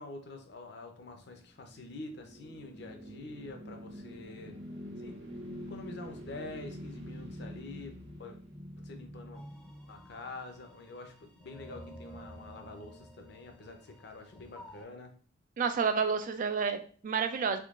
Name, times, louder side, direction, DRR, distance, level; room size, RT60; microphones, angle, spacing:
voice 1, 0.0-4.6 5.0-5.2 5.7-8.4 8.8-9.4 9.9-15.1, left 2 dB, 60° left, 5 dB, 0.6 m, -46 dB
sound 1, 1.3-10.5, equal, 65° right, 1.3 m, -46 dB
sound 2, 9.3-14.8, equal, 5° left, 0.6 m, -52 dB
voice 2, 15.6-17.6, right 6 dB, 45° right, 7 dB, 0.4 m, -30 dB
3.6 x 3.2 x 2.4 m, 0.42 s
head